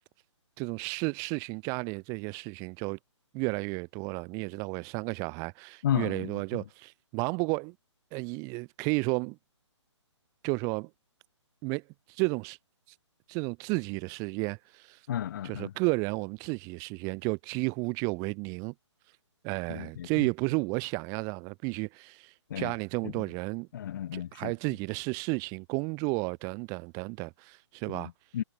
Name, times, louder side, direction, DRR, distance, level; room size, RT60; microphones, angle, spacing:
voice 1, 0.6-3.0 3.3-7.7 8.1-9.4 10.4-10.9 11.6-11.8 12.1-12.6 12.9-13.0 13.3-15.0 15.4-18.7 19.4-23.7 24.1-28.1, right 31 dB, 20° right, 1.3 m, -32 dB
voice 2, 5.8-6.6 15.1-15.7 19.7-20.3 22.5-22.7 23.0-23.2 23.7-24.5 27.9-28.4, left 10 dB, 40° left, 0.9 m, -33 dB
hypercardioid pair, 155°, 16 cm